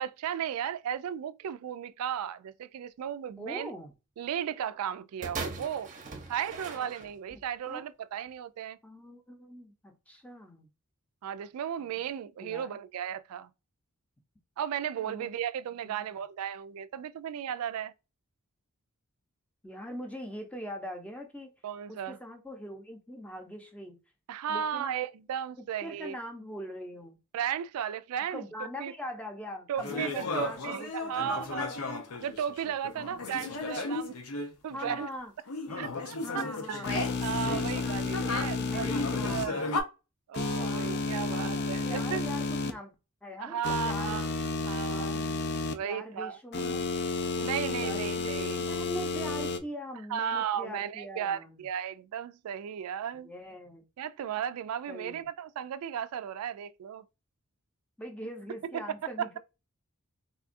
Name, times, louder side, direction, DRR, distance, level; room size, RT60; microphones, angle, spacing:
voice 1, 0.0-3.7 4.2-5.9 6.3-8.8 11.2-13.5 14.6-17.9 21.6-22.2 24.3-26.1 27.3-28.9 29.7-31.8 32.2-34.1 34.6-35.1 35.8-38.9 39.2-39.7 40.3-42.2 43.4-44.3 44.7-45.1 45.7-46.4 47.4-48.6 50.1-53.3 54.0-57.0 58.7-58.8 59.2-59.4, right 9 dB, 85° right, 0.3 m, -35 dB
voice 2, 3.4-3.9 7.7-7.9 8.8-10.7 11.8-12.0 12.4-12.8 15.0-15.3 15.8-16.2 19.6-21.5 21.9-24.0 24.5-24.9 25.8-27.2 28.3-31.5 32.9-33.3 34.7-35.3 35.7-35.9 36.2-36.9 37.4-39.7 40.5-43.0 43.2-43.6 43.8-44.2 44.9-45.5 45.8-46.9 47.8-51.7 53.2-53.8 54.9-55.3 58.0-59.4, equal, 5° left, 0.6 m, -42 dB
sound 1, 5.2-7.5 8.3-8.4, right 4 dB, 35° right, 0.7 m, -40 dB
sound 2, 29.8-35.0 35.5-39.8, left 3 dB, 85° left, 0.7 m, -35 dB
sound 3, 36.8-39.4 40.3-42.7 43.6-45.7 46.5-49.6, left 3 dB, 50° left, 0.4 m, -31 dB
4.2 x 2.3 x 2.5 m
head